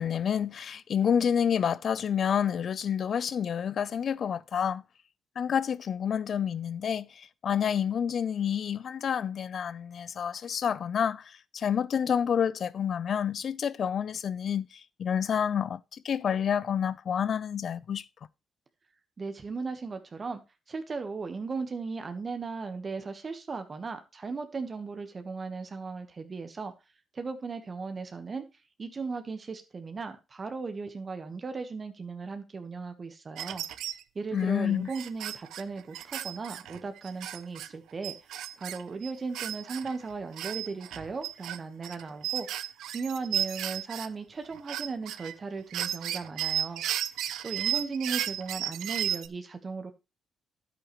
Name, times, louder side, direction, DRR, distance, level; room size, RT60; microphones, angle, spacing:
voice 1, 0.0-4.8 5.4-18.0 34.3-34.9, left 8 dB, 55° left, 0.5 m, -29 dB
voice 2, 19.2-20.4 20.7-26.7 27.1-28.5 28.8-33.6 34.1-38.1 38.6-42.5 42.9-46.8 47.4-49.9, right 4 dB, 35° right, 1.2 m, -37 dB
sound 1, 33.4-34.0 34.4-34.5 34.9-37.7 38.0-40.0 40.3-44.1 44.5-45.3 45.7-49.3, right 11 dB, 80° right, 0.6 m, -33 dB
10.0 x 8.5 x 3.1 m
cardioid pair, 90°, 0 cm